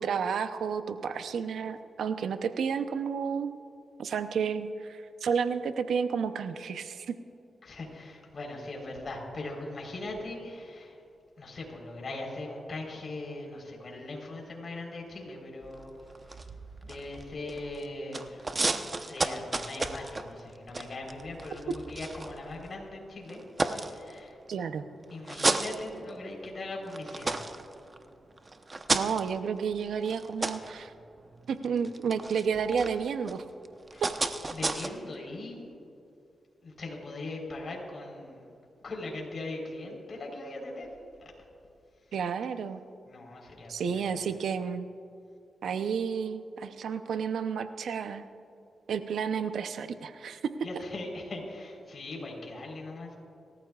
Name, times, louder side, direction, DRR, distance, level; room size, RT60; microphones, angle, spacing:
voice 1, 0.0-3.5 4.0-7.1 24.5-24.8 28.9-30.9 31.5-33.4 34.0-34.1 42.1-42.8 43.7-44.9 45.6-48.2 48.9-50.4, right 6 dB, 80° right, 9 dB, 0.7 m, -31 dB
voice 2, 7.6-11.0 11.4-16.5 16.8-18.6 18.9-24.4 25.1-27.5 33.9-34.0 34.5-35.7 36.6-38.5 38.8-40.9 41.2-41.3 43.1-44.3 50.6-53.1, left 2 dB, 55° left, -1 dB, 4.0 m, -40 dB
sound 1, 15.6-17.9 18.1-22.8 23.3-24.5 25.0-26.5 26.8-34.9, right 3 dB, 35° right, 0.9 m, -34 dB
27.0 x 14.0 x 2.4 m, 2.6 s
cardioid pair, 65°, 0 cm